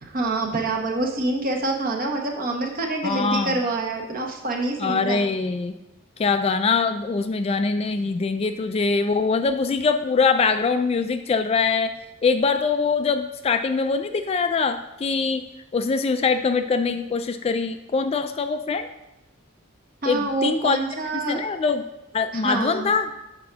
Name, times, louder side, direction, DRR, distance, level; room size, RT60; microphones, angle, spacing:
voice 1, 0.0-5.2 20.0-21.4 22.3-22.9, right 2 dB, 45° right, 2 dB, 1.0 m, -26 dB
voice 2, 3.0-3.6 4.8-5.8 6.2-11.9 12.2-15.4 15.7-18.9 20.1-20.8 21.1-21.8 22.1-23.1, left 4 dB, 30° left, 9 dB, 0.3 m, -23 dB
6.0 x 3.7 x 5.7 m, 0.97 s
head